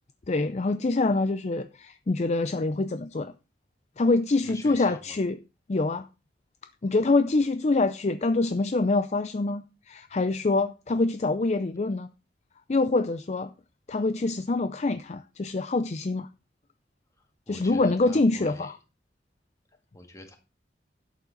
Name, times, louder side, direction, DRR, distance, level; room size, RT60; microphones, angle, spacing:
voice 1, 0.3-3.3 4.0-5.4 5.7-6.1 6.8-12.1 12.7-13.5 13.9-16.3 17.5-18.7, left 3 dB, 40° left, 0.5 m, -25 dB
voice 2, 4.4-5.2 17.5-18.7 19.9-20.4, left 1 dB, 20° left, 2.0 m, -45 dB
11.5 x 8.2 x 3.9 m
head